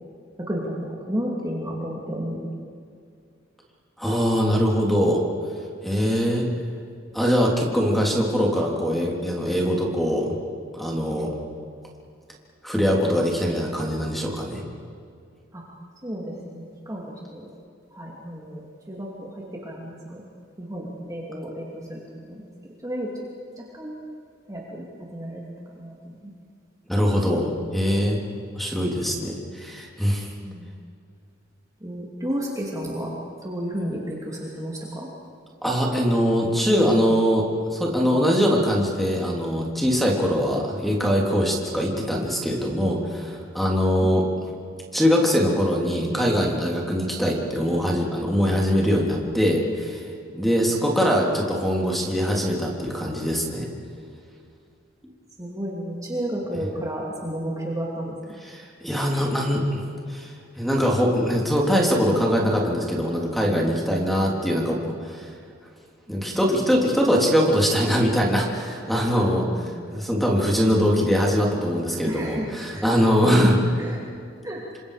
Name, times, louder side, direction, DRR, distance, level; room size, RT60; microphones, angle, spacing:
voice 1, 0.4-2.5 15.5-15.6 16.0-17.5 17.9-18.6 18.9-20.2 20.6-22.0 22.3-22.4 22.8-23.1 23.6-24.0 24.5-25.4 25.8-26.3 30.4-30.7 31.8-33.1 33.4-35.1 44.0-44.1 55.4-58.4 63.5-63.7 66.1-66.5 69.4-69.7 72.0-74.1 74.4-74.6, equal, 15° right, -3 dB, 2.8 m, -32 dB
voice 2, 4.0-5.2 5.8-6.5 7.1-10.3 10.7-11.3 12.6-14.6 26.9-28.2 28.6-30.3 35.6-44.3 44.9-50.0 50.3-53.7 58.4-60.3 60.6-65.3 66.1-73.6, equal, ahead, -2 dB, 3.6 m, -22 dB
28.0 x 25.5 x 5.1 m, 2.3 s
head